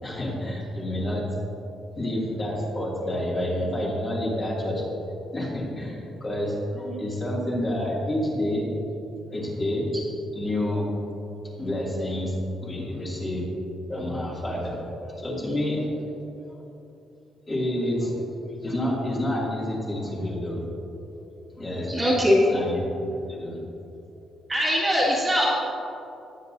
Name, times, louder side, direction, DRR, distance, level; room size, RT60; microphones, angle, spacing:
voice 1, 0.0-1.3 1.9-4.9 5.2-8.7 9.3-9.9 10.3-10.9 11.6-12.3 12.6-13.5 13.9-16.3 17.5-18.2 18.6-20.7 21.6-23.6, left 1 dB, 25° left, -5 dB, 2.5 m, -29 dB
voice 2, 21.9-22.4 24.5-25.5, equal, 15° right, -5 dB, 2.2 m, -21 dB
19.0 x 8.4 x 2.7 m, 2.8 s
cardioid pair, 145°, 0 cm